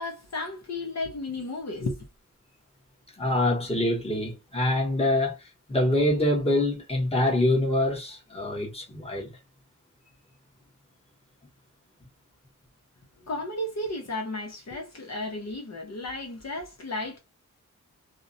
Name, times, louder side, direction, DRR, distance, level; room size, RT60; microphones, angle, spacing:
voice 1, 0.0-2.0 13.2-17.2, left 2 dB, 55° left, 0.7 m, -33 dB
voice 2, 3.2-9.3, left 1 dB, 20° left, 1.0 m, -25 dB
2.4 x 2.1 x 2.6 m
wide cardioid pair, 100°, 32 cm